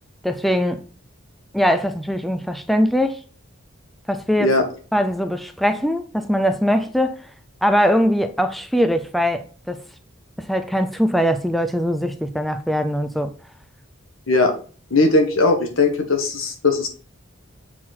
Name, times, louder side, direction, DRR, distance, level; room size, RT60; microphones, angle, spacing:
voice 1, 0.2-0.9 1.5-3.2 4.1-4.5 4.9-7.2 7.6-9.8 10.4-13.3, equal, ahead, 0.4 m, -21 dB
voice 2, 14.9-16.9, left 3 dB, 80° left, 1.5 m, -18 dB
7.4 x 4.3 x 4.2 m
head